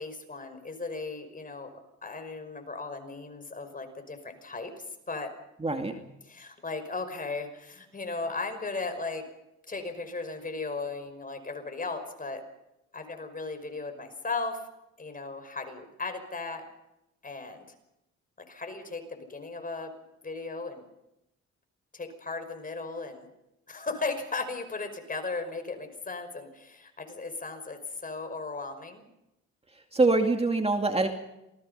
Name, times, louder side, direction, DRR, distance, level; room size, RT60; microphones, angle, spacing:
voice 1, 0.0-1.7 2.0-5.3 6.2-9.3 9.7-12.4 12.9-14.6 15.0-16.7 17.2-17.6 18.5-19.9 20.2-20.8 21.9-23.3 23.7-29.1, left 3 dB, 30° left, 7 dB, 5.4 m, -36 dB
voice 2, 5.6-6.0 29.9-31.1, right 3 dB, 20° right, 4 dB, 2.4 m, -24 dB
28.0 x 19.0 x 5.6 m, 0.89 s
cardioid pair, 90°, 30 cm